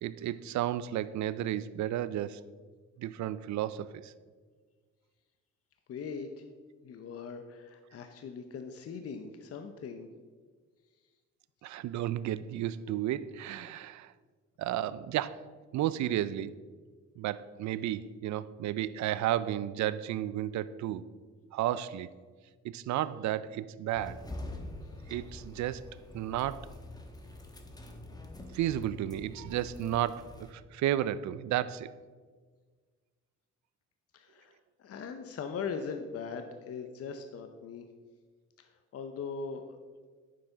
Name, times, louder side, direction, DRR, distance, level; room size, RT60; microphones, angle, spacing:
voice 1, 0.0-2.4 3.0-4.1 11.6-14.1 14.6-15.4 15.7-16.6 17.2-21.0 21.5-22.1 22.6-24.2 25.1-25.9 26.1-26.7 28.5-31.9, right 12 dB, 70° right, 16 dB, 0.5 m, -33 dB
voice 2, 5.9-6.3 6.8-10.1 34.1-34.5 34.8-37.8 38.6-39.6, left 5 dB, 50° left, 7 dB, 0.7 m, -40 dB
sound 1, 23.9-30.5, left 1 dB, 15° left, 1.1 m, -45 dB
9.4 x 6.7 x 3.9 m, 1.5 s
cardioid pair, 90°, 30 cm